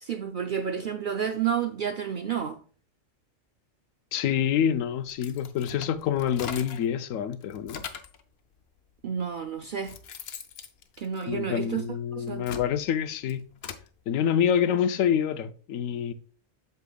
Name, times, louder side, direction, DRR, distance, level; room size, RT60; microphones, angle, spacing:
voice 1, 0.0-2.6 9.0-10.0 11.0-11.8 12.1-12.5, right 8 dB, 60° right, 0.5 m, -30 dB
voice 2, 4.1-7.8 11.3-13.4 14.1-16.1, left 9 dB, 85° left, 1.0 m, -27 dB
sound 1, 5.1-6.9 7.3-8.2 9.0-9.1 9.6-11.7 12.2-13.9, left 7 dB, 60° left, 0.9 m, -41 dB
8.1 x 6.9 x 2.3 m
omnidirectional pair, 1.3 m